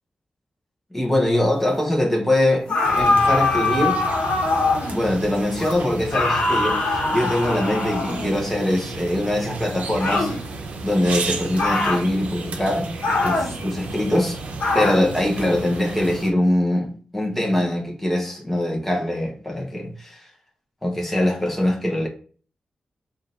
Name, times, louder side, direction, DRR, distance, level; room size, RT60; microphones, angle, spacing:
voice 1, 0.9-2.7 3.0-4.0 4.9-10.3 10.8-12.9 13.2-14.4 14.7-20.2 20.8-22.1, left 1 dB, 5° left, 1.0 m, -22 dB
Zipper (clothing), 1.1-1.9 2.5-3.0 4.1-4.9 5.3-5.8, left 1 dB, 25° left, 1.0 m, -40 dB
sound 1, 2.7-5.0 6.1-8.4 10.0-10.4 11.6-12.1 13.0-13.5 14.6-15.1, left 3 dB, 75° left, 1.0 m, -22 dB
sound 2, 2.8-16.3, right 3 dB, 80° right, 0.7 m, -33 dB
3.7 x 2.6 x 4.0 m
wide cardioid pair, 165°, 2 cm